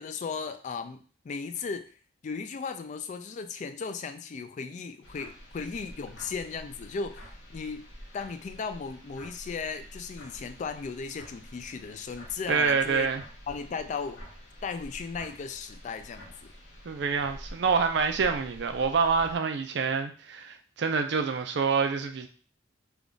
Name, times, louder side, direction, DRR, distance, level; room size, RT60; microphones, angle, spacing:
voice 1, 0.0-1.9 2.2-7.8 8.1-13.1 13.5-14.2 14.6-16.3, left 5 dB, 40° left, 0.3 m, -36 dB
sound 1, 5.0-19.4, equal, 85° left, 1.1 m, -48 dB
voice 2, 12.5-13.2 16.9-22.3, right 5 dB, 65° right, 0.4 m, -27 dB
3.3 x 2.3 x 3.8 m
head